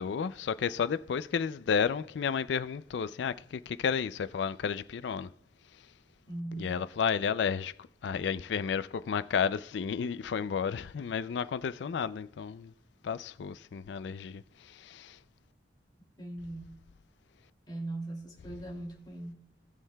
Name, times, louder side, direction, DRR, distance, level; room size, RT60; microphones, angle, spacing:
voice 1, 0.0-5.3 5.7-5.9 6.6-12.7 13.0-15.2, left 6 dB, 70° left, 0.4 m, -32 dB
voice 2, 6.3-6.7 16.2-16.8 17.7-19.3, right 2 dB, 25° left, 2.5 m, -39 dB
19.0 x 6.4 x 2.2 m
head